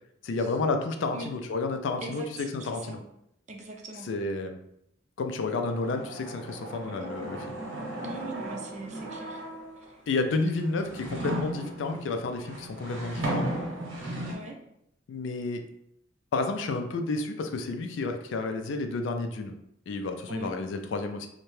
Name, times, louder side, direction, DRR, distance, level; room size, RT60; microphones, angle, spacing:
voice 1, 0.2-3.0 4.0-4.6 5.2-7.6 10.1-13.5 15.1-15.6 16.3-19.5 19.9-21.3, left 3 dB, 70° left, 6 dB, 0.3 m, -31 dB
voice 2, 2.0-3.0 3.5-4.1 6.8-7.2 8.0-9.4 9.8-10.0 14.2-14.6 20.3-20.5, right 2 dB, 40° right, 2 dB, 0.4 m, -41 dB
sound 1, 5.5-9.9 10.5-14.4, right 1 dB, 80° right, 0.9 m, -36 dB
2.7 x 2.1 x 3.1 m, 0.77 s
head